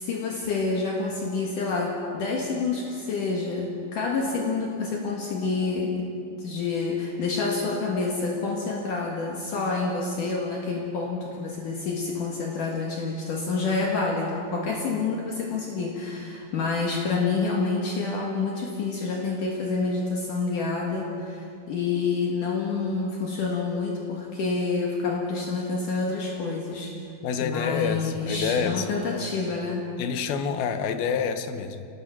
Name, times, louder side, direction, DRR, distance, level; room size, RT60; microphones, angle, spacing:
voice 1, 0.0-26.9 27.4-29.9, left 4 dB, 60° left, -1 dB, 3.1 m, -28 dB
voice 2, 27.2-28.9 30.0-31.9, left 6 dB, 85° left, 8 dB, 3.0 m, -27 dB
27.0 x 19.5 x 5.9 m, 2.4 s
omnidirectional pair, 4.3 m